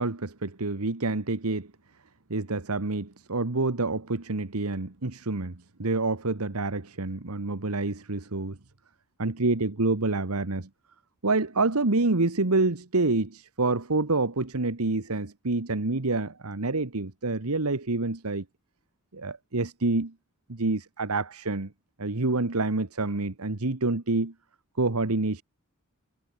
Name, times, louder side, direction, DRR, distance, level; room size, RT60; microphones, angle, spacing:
voice 1, 0.0-1.7 2.3-8.6 9.2-10.7 11.2-18.4 19.1-20.1 20.5-21.7 22.0-24.3 24.8-25.4, right 3 dB, 85° right, 1.5 m, -27 dB
head